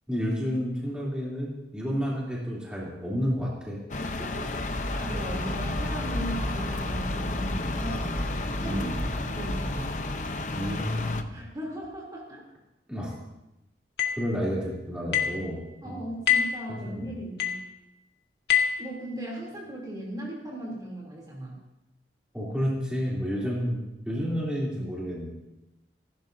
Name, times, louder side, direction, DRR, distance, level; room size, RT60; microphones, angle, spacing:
voice 1, 0.1-3.8 8.6-9.0 10.5-11.4 12.9-13.1 14.2-16.1 16.7-17.1 22.3-25.3, equal, 5° right, -6 dB, 3.0 m, -30 dB
sound 1, 3.9-11.2, left 2 dB, 40° left, 0.7 m, -33 dB
voice 2, 4.0-8.2 8.6-10.0 11.3-12.4 15.8-17.6 18.8-21.6 23.4-23.5, right 1 dB, 20° right, -3 dB, 3.0 m, -38 dB
sound 2, 4.6-9.9, equal, 20° left, 2.7 m, -34 dB
sound 3, 14.0-14.3 15.1-15.4 16.3-16.6 17.4-17.7 18.5-18.9, left 8 dB, 75° left, 1.8 m, -25 dB
27.0 x 12.0 x 2.7 m, 0.96 s
head